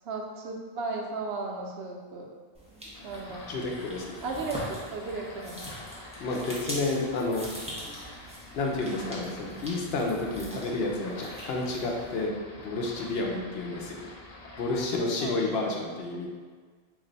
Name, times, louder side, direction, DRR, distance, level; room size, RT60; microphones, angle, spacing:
voice 1, 0.0-2.3 3.0-3.8 4.2-5.7 15.2-15.7, right 3 dB, 85° right, 1 dB, 0.8 m, -36 dB
sound 1, 2.5-12.2, equal, 10° right, 0.6 m, -43 dB
sound 2, 2.9-14.9, left 2 dB, 55° left, 0.5 m, -46 dB
voice 2, 3.5-4.2 6.2-7.5 8.5-12.3 12.6-14.1 14.6-16.3, left 2 dB, 80° left, 0 dB, 0.9 m, -30 dB
3.1 x 2.5 x 3.9 m, 1.5 s
omnidirectional pair, 1.0 m